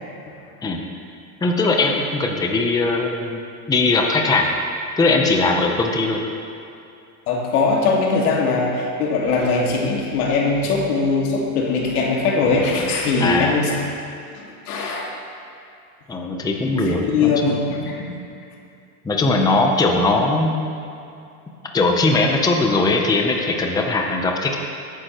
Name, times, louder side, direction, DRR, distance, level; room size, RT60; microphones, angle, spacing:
voice 1, 1.4-3.4 3.7-4.5 5.0-6.2 13.2-13.6 16.1-17.5 19.0-20.7 21.7-24.6, left 3 dB, 10° left, 2 dB, 0.7 m, -20 dB
voice 2, 7.3-13.8 14.3-15.1 16.7-18.1, left 4 dB, 85° left, -1 dB, 2.2 m, -21 dB
17.5 x 9.3 x 3.1 m, 2.5 s
supercardioid pair, 135°, 44 cm